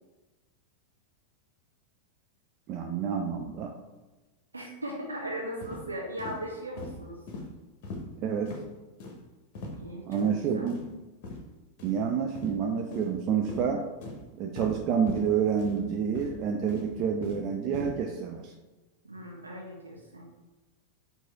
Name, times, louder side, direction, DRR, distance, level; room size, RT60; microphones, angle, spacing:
voice 1, 2.7-3.7 8.2-8.5 10.1-10.8 11.8-13.8 14.4-18.5, right 7 dB, 40° right, 3 dB, 0.4 m, -28 dB
voice 2, 4.5-7.2 9.8-10.3 10.5-10.7 19.0-20.2, right 1 dB, 80° right, -1 dB, 0.6 m, -38 dB
sound 1, 5.6-5.8 6.2-6.4 6.8-7.0 7.3-7.4 7.8-8.0 8.5-8.6 9.0-9.2 9.5-9.8 10.1-10.3 10.7-10.9 11.2-11.4 11.8-12.0 12.3-12.5 12.9-13.2 13.5-13.6 14.0-14.2 14.6-14.7 15.1-15.3 15.6-15.8 16.1-16.4 16.7-17.4 17.7-17.9, left 2 dB, 45° left, 0.9 m, -40 dB
4.6 x 2.6 x 4.1 m, 1.2 s
figure-of-eight pair, 90°, 0 cm